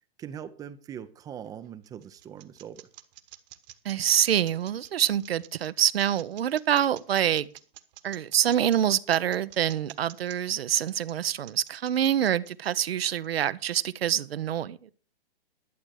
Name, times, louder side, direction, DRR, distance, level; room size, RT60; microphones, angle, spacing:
voice 1, 0.2-2.9, right 9 dB, 10° right, 0.5 m, -41 dB
sound 1, 1.4-13.5, right 15 dB, 45° right, 1.3 m, -49 dB
voice 2, 3.8-7.5 8.0-14.9, right 10 dB, 75° right, 0.9 m, -26 dB
12.0 x 7.3 x 6.3 m
hypercardioid pair, 140°, 30 cm